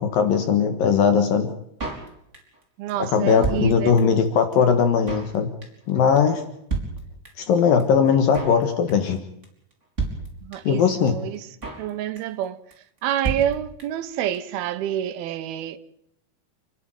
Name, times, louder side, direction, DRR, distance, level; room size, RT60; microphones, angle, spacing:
voice 1, 0.0-1.5 3.0-5.5 5.9-6.4 7.4-9.2 10.6-11.2, left 6 dB, 70° left, 3.2 m, -19 dB
Drum kit, 1.8-2.6 2.9-3.0 3.2-4.3 4.5-4.6 4.8-5.3 5.6-5.9 6.2-6.3 6.4-6.5 6.7-7.5 7.8-7.9 8.1-8.6 8.9-9.2 9.4-9.5 9.7-9.8 10.0-10.8 11.1-11.2 11.3-11.9 12.2-12.4 12.7-12.8 13.0-13.1 13.2-14.1 14.3-14.4 14.6-14.7, right 4 dB, 20° right, 4.5 m, -31 dB
voice 2, 2.8-4.0 10.4-11.5 11.8-12.6 13.0-15.8, right 11 dB, 80° right, 3.0 m, -28 dB
29.0 x 11.0 x 9.3 m
omnidirectional pair, 4.4 m